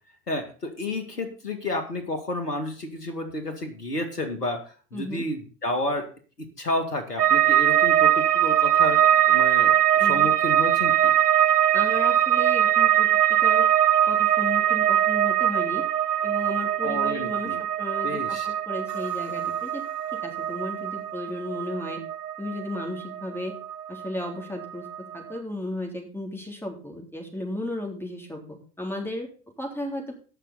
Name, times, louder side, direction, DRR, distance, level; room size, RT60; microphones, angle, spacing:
voice 1, 0.3-4.6 4.9-6.1 6.6-11.1 16.8-17.6 18.0-18.5, left 1 dB, 85° left, 7 dB, 2.2 m, -31 dB
voice 2, 4.9-5.2 10.0-10.3 11.7-13.7 14.1-15.8 16.2-19.8 20.1-22.0 22.4-23.5 23.9-29.3 29.6-30.1, left 1 dB, 5° left, 2 dB, 3.7 m, -34 dB
sound 1, 7.2-24.3 24.6-25.3, right 11 dB, 85° right, 0.6 m, -22 dB
18.0 x 6.5 x 4.0 m, 0.38 s
figure-of-eight pair, 75°, 46 cm